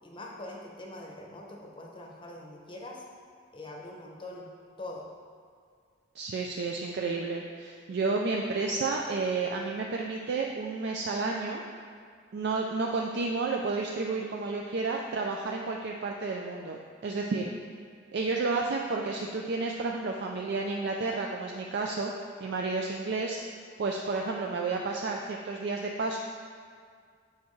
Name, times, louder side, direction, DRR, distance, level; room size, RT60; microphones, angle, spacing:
voice 1, 0.0-3.0 3.5-4.5 4.8-5.1, left 1 dB, 25° left, -1 dB, 0.7 m, -43 dB
voice 2, 6.2-11.6 12.3-17.5 18.1-22.1 22.4-23.4 23.8-26.2, right 3 dB, 55° right, 0 dB, 0.4 m, -31 dB
7.4 x 4.6 x 3.1 m, 2.1 s
head